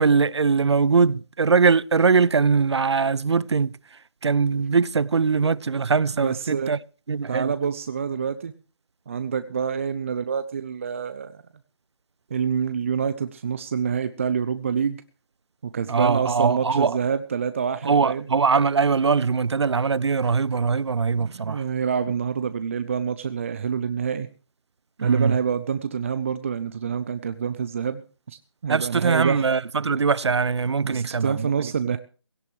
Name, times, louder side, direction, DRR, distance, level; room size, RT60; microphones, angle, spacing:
voice 1, 0.0-6.8 7.1-7.5 15.9-17.0 17.8-21.6 25.0-25.4 28.7-32.0, right 5 dB, 75° right, 0.6 m, -22 dB
voice 2, 6.2-6.7 7.3-8.5 9.1-11.4 12.3-15.0 15.7-18.2 21.2-24.3 25.0-28.0 28.3-29.5 30.8-32.0, right 7 dB, 30° right, 0.6 m, -27 dB
17.0 x 17.0 x 3.1 m
figure-of-eight pair, 165°, 15 cm